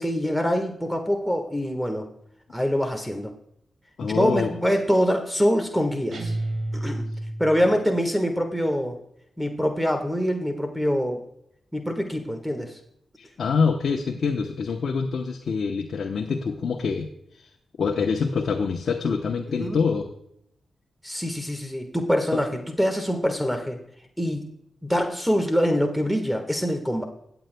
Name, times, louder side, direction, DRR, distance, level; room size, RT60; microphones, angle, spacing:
voice 1, 0.0-2.1 2.5-3.3 4.0-6.4 6.7-7.0 7.4-9.0 9.4-11.2 11.7-12.7 19.6-19.8 21.0-23.8 24.2-24.5 24.8-27.0, equal, ahead, 5 dB, 1.4 m, -24 dB
voice 2, 4.0-4.5 13.2-17.5 17.8-20.1, left 5 dB, 70° left, 2 dB, 0.8 m, -25 dB
sound 1, 6.1-7.8, right 1 dB, 65° right, 1.6 m, -30 dB
19.0 x 7.9 x 2.2 m, 0.74 s
cardioid pair, 60°, 0 cm